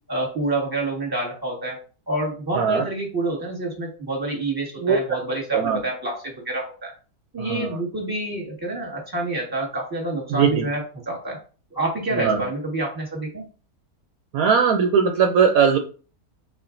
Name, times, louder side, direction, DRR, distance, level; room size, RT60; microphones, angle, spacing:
voice 1, 0.1-1.8 2.1-6.9 7.3-11.4 11.7-13.4, right 2 dB, 15° right, -1 dB, 1.5 m, -28 dB
voice 2, 7.4-7.8 10.3-10.6 12.1-12.4 14.3-15.8, right 6 dB, 70° right, 4 dB, 1.0 m, -19 dB
4.3 x 4.1 x 2.5 m, 0.38 s
omnidirectional pair, 1.7 m